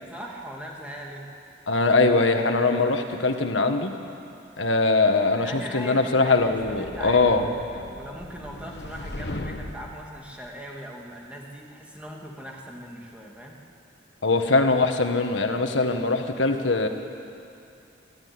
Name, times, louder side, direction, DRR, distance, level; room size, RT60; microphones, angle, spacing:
voice 1, 0.0-1.3 5.4-6.4 6.7-7.4 7.7-13.6, equal, 5° right, -2 dB, 2.5 m, -40 dB
voice 2, 1.7-4.0 4.6-7.5 14.2-16.9, left 3 dB, 90° left, 6 dB, 1.5 m, -22 dB
sound 1, 6.6-10.1, left 1 dB, 60° left, 1.3 m, -38 dB
28.5 x 12.5 x 9.6 m, 2.6 s
head